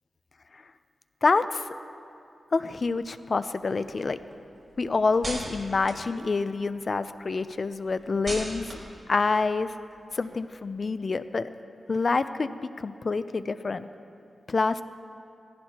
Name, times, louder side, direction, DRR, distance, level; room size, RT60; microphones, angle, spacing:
voice 1, 1.2-1.6 2.5-4.2 4.8-8.8 9.1-9.7 10.1-11.5 11.9-13.9 14.5-14.8, left 4 dB, 40° left, 12 dB, 0.4 m, -27 dB
sound 1, 2.7-6.9 7.3-10.7, right 1 dB, 35° right, 2.1 m, -41 dB
19.0 x 15.5 x 2.9 m, 2.5 s
wide cardioid pair, 140°, 0 cm